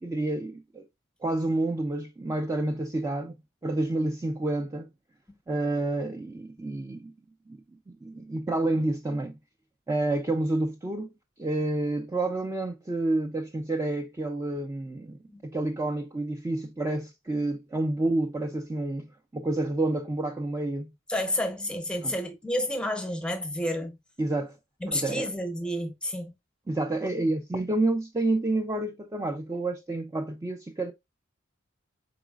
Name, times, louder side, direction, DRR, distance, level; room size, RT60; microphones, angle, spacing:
voice 1, 0.0-0.8 1.2-3.4 3.6-4.9 5.5-7.1 7.5-7.6 7.9-9.4 9.9-11.1 11.4-19.1 19.3-20.9 22.0-22.1 24.2-24.6 24.9-25.3 26.7-30.9, right 2 dB, 15° right, 0.4 m, -29 dB
voice 2, 21.1-24.0 24.8-26.3, left 1 dB, 5° left, 0.7 m, -30 dB
4.0 x 3.9 x 2.3 m
head